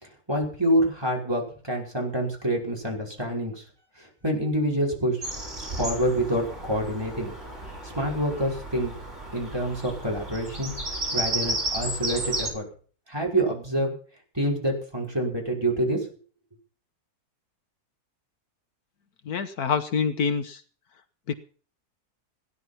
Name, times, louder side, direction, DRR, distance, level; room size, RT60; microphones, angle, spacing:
voice 1, 0.0-3.6 4.0-5.2 5.8-7.3 7.8-8.9 9.3-10.7 11.1-12.7 13.1-13.9 14.3-16.1, right 1 dB, 15° right, -1 dB, 5.6 m, -27 dB
Bird vocalization bird call bird song, 5.2-12.5, right 1 dB, 50° right, 5.8 m, -33 dB
voice 2, 19.2-20.6 21.3-21.4, left 6 dB, 75° left, 10 dB, 1.6 m, -26 dB
17.5 x 11.0 x 5.9 m, 0.42 s
omnidirectional pair, 1.6 m